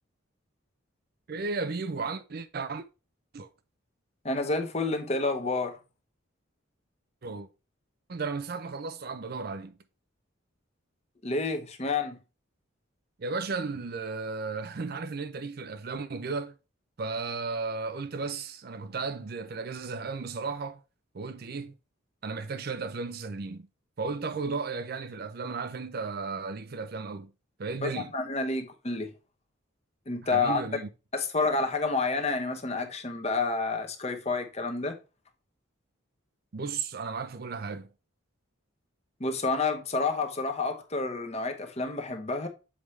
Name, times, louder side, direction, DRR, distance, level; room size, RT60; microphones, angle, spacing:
voice 1, 1.3-2.9 3.3-3.5 7.2-7.5 8.1-9.7 13.2-16.5 17.0-20.8 21.1-21.7 22.2-23.7 24.0-27.3 27.6-28.1 30.3-30.9 36.5-37.9, right 4 dB, 45° right, 0.5 m, -34 dB
voice 2, 4.2-5.8 11.2-12.2 27.8-29.1 30.1-30.6 31.1-35.0 39.2-42.5, left 3 dB, 30° left, 0.9 m, -29 dB
7.3 x 4.8 x 3.2 m
head